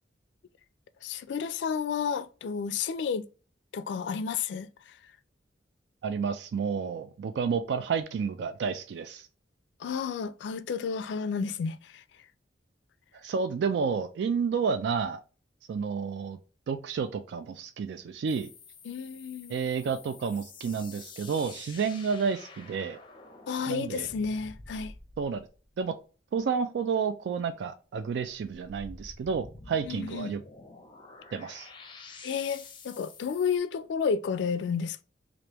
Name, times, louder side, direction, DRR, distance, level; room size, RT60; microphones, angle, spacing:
voice 1, 1.0-3.3 3.7-5.0 9.8-12.0 18.9-19.6 23.5-24.9 29.8-30.4 32.2-35.0, left 6 dB, 75° left, 0.3 m, -31 dB
voice 2, 6.0-9.3 13.1-15.2 15.7-16.4 16.7-18.5 19.5-23.0 23.7-24.1 25.2-25.5 25.8-26.0 26.3-30.4 31.3-31.7, right 6 dB, 70° right, 0.3 m, -30 dB
sound 1, 18.3-25.6 28.3-33.6, left 3 dB, 30° left, 0.5 m, -49 dB
3.4 x 2.5 x 2.9 m
head